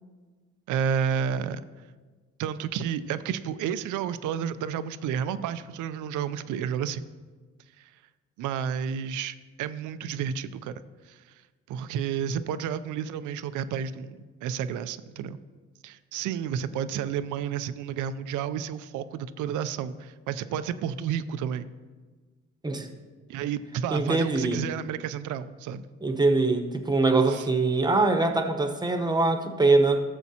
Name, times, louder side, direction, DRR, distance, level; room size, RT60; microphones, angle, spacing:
voice 1, 0.7-1.6 2.4-7.0 7.8-7.9 8.4-10.7 11.1-11.2 11.7-15.4 15.8-21.6 23.3-25.8 27.3-27.5, right 8 dB, 85° right, 13 dB, 0.5 m, -31 dB
voice 2, 23.9-24.6 26.0-30.0, right 3 dB, 15° right, 5 dB, 0.9 m, -23 dB
13.5 x 7.2 x 2.8 m, 1.4 s
cardioid pair, 90°, 30 cm